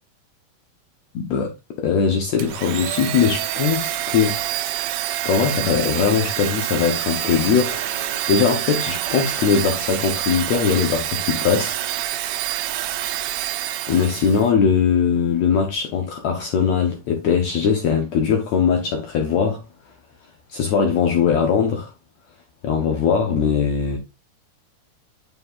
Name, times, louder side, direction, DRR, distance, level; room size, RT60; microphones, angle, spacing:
voice 1, 1.1-1.5 1.8-4.4 5.2-11.8 13.9-19.6 20.5-21.9 22.6-24.0, left 6 dB, 80° left, 1.6 m, -20 dB
Domestic sounds home sounds, 2.4-14.5, right 13 dB, 80° right, 2.4 m, -27 dB
sound 1, 7.1-11.8, left 2 dB, 45° left, 1.5 m, -42 dB
6.9 x 6.7 x 2.4 m
omnidirectional pair, 4.4 m